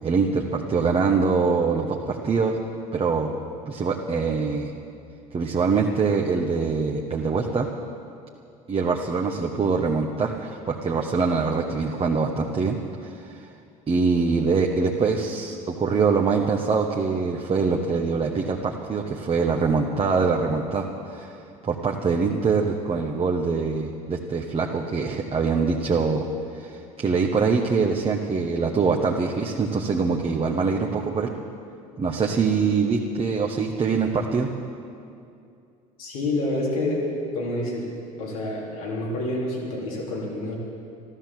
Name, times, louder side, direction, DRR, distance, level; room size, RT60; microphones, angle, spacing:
voice 1, 0.0-2.6 2.9-3.3 3.7-4.7 5.3-7.7 8.7-13.5 13.9-21.4 21.6-26.3 26.5-31.3 32.0-34.5, right 4 dB, 30° right, 0 dB, 1.3 m, -24 dB
voice 2, 36.0-37.9 38.2-40.6, left 1 dB, 85° left, -4 dB, 4.0 m, -28 dB
13.0 x 13.0 x 7.6 m, 2.5 s
hypercardioid pair, 75°, 18 cm